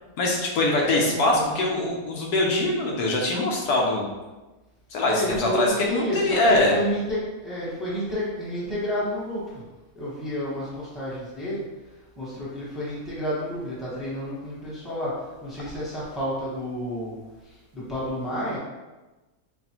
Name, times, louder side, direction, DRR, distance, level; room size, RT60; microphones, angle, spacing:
voice 1, 0.2-4.0 4.9-6.8, left 2 dB, 80° left, -1 dB, 1.3 m, -23 dB
voice 2, 0.8-1.9 5.1-9.6 9.9-11.6 12.2-17.1 17.4-18.6, equal, ahead, -8 dB, 0.9 m, -30 dB
4.1 x 3.2 x 3.0 m, 1.1 s
omnidirectional pair, 1.6 m